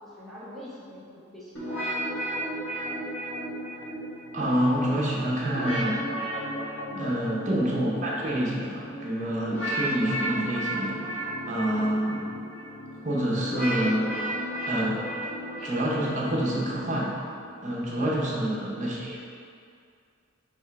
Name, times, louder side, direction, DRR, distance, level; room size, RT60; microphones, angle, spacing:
voice 1, 0.0-1.9 6.8-7.2, left 1 dB, ahead, -8 dB, 0.9 m, -45 dB
sound 1, 1.5-17.5, right 1 dB, 85° left, 1.3 m, -34 dB
voice 2, 4.3-6.0 7.0-12.2 13.0-14.1 14.7-15.0 15.6-17.2 17.6-19.2, right 1 dB, 40° right, -4 dB, 0.8 m, -27 dB
3.5 x 3.3 x 4.6 m, 2.4 s
head